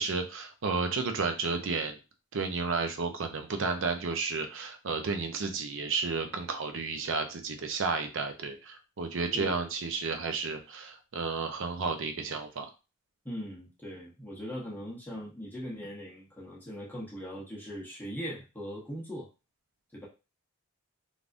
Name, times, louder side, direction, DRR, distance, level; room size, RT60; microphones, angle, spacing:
voice 1, 0.0-2.0 2.3-12.7, right 4 dB, 55° right, 6 dB, 0.5 m, -32 dB
voice 2, 13.2-19.3 19.9-20.1, equal, 10° left, -5 dB, 0.8 m, -40 dB
3.4 x 2.5 x 2.5 m, 0.30 s
head